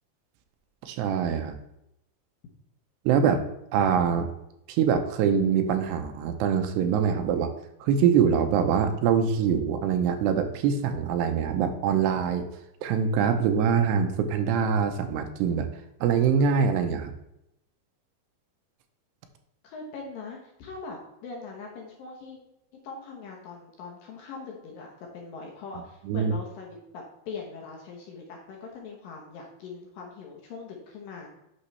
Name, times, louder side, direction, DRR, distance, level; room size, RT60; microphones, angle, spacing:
voice 1, 0.8-1.6 3.1-3.4 3.7-4.3 4.7-7.5 7.8-12.5 12.8-15.7 16.0-17.1 26.1-26.3, right 7 dB, 85° right, 7 dB, 2.8 m, -24 dB
voice 2, 19.6-22.4 22.8-31.3, left 4 dB, 65° left, -1 dB, 2.5 m, -41 dB
8.4 x 6.2 x 3.2 m, 0.83 s
omnidirectional pair, 4.9 m